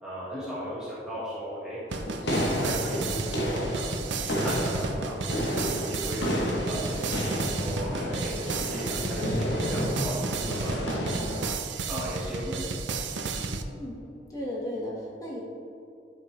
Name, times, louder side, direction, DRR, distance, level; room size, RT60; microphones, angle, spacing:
voice 1, 0.0-1.8 2.3-6.3 6.6-8.3 8.6-11.2 11.9-12.9 13.3-13.5, equal, 5° right, -10 dB, 1.7 m, -37 dB
sound 1, 1.9-11.4, equal, 80° left, 1.1 m, -31 dB
sound 2, 1.9-13.6, right 4 dB, 90° right, 0.6 m, -33 dB
voice 2, 13.7-14.0 14.3-15.4, left 1 dB, 20° left, -5 dB, 1.6 m, -36 dB
11.5 x 5.4 x 3.3 m, 2.7 s
head